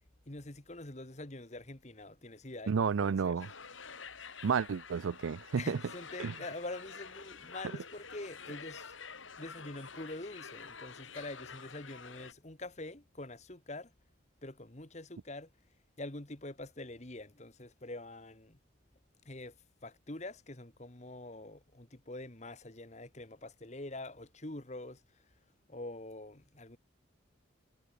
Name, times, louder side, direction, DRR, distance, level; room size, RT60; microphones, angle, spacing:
voice 1, 0.2-3.4 5.6-8.9 9.4-13.9 14.4-15.5 16.0-18.6 19.2-19.5 19.8-25.0 25.7-26.8, left 2 dB, 35° left, 1.6 m, -45 dB
voice 2, 2.7-3.5 4.4-5.8 6.2-6.3, right 6 dB, 90° right, 0.4 m, -31 dB
sound 1, 3.4-12.3, left 5 dB, 80° left, 6.3 m, -49 dB
head